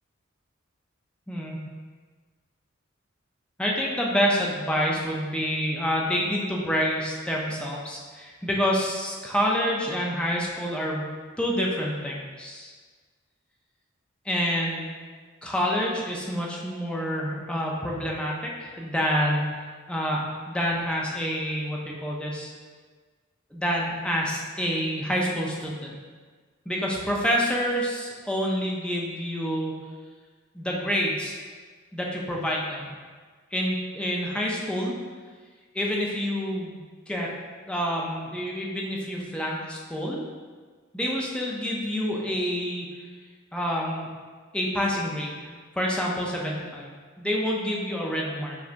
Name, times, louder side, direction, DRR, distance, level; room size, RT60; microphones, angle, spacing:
voice 1, 1.3-1.6 3.6-11.1 11.4-12.7 14.3-14.9 15.4-19.6 19.9-22.5 23.5-26.0 26.7-29.7 30.5-31.4 31.9-32.9 33.5-34.9 35.7-37.3 37.7-40.2 40.9-42.9 43.5-44.1 44.5-45.5 45.8-48.6, equal, 5° left, -3 dB, 0.5 m, -27 dB
4.9 x 3.3 x 2.6 m, 1.5 s
head